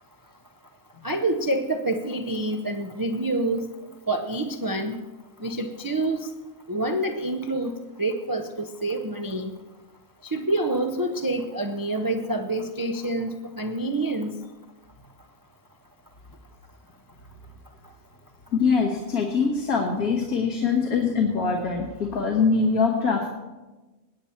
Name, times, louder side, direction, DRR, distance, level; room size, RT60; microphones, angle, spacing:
voice 1, 1.0-3.7 4.1-5.0 5.4-6.3 6.7-9.5 10.2-14.4, right 2 dB, 35° right, 5 dB, 0.3 m, -27 dB
voice 2, 18.5-23.3, left 5 dB, 85° left, 0 dB, 1.8 m, -23 dB
20.0 x 8.6 x 4.3 m, 1.2 s
omnidirectional pair, 1.5 m